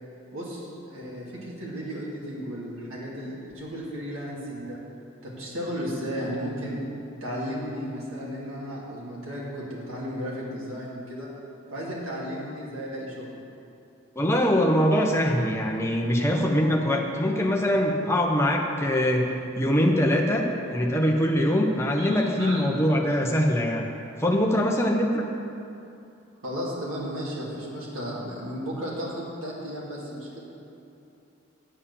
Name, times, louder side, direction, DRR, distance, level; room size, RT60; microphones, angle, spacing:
voice 1, 0.3-4.8 5.2-6.8 7.2-11.3 11.7-13.4 22.0-22.7 26.4-30.4, equal, 85° right, -5 dB, 2.8 m, -34 dB
voice 2, 14.2-20.4 20.7-23.9 24.2-25.3, equal, 15° left, 0 dB, 0.9 m, -23 dB
8.6 x 8.1 x 6.9 m, 2.7 s
head